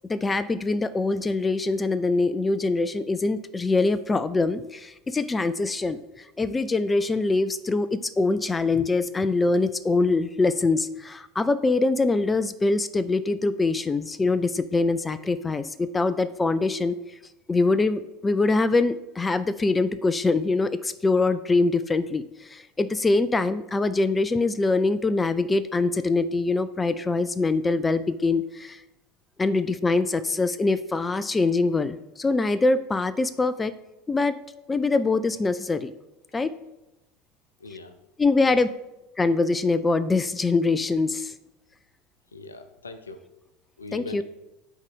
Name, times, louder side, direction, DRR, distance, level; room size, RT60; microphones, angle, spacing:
voice 1, 0.1-17.0 17.5-28.8 29.4-33.7 34.1-34.4 34.7-35.9 36.3-36.5 38.2-38.7 39.2-41.3 43.9-44.2, left 3 dB, 15° left, 14 dB, 0.4 m, -24 dB
voice 2, 37.6-37.9 38.4-38.6 42.3-43.2 43.8-44.2, left 2 dB, 80° left, 9 dB, 0.6 m, -40 dB
7.2 x 4.1 x 6.2 m, 0.95 s
figure-of-eight pair, 75°, 0 cm